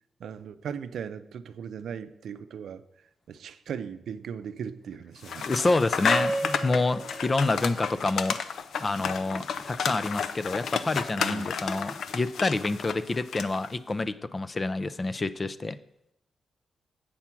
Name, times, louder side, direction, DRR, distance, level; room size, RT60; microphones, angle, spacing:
voice 1, 0.2-2.8 3.3-5.5 11.2-11.6, right 7 dB, 80° right, 11 dB, 0.5 m, -38 dB
sound 1, 5.2-13.7, left 7 dB, 80° left, 0.5 m, -32 dB
voice 2, 5.4-8.4 8.8-15.8, left 3 dB, 30° left, 14 dB, 0.4 m, -28 dB
sound 2, 6.1-8.4, right 2 dB, 30° right, 1.0 m, -34 dB
8.5 x 5.7 x 6.0 m, 0.80 s
cardioid pair, 100°, 0 cm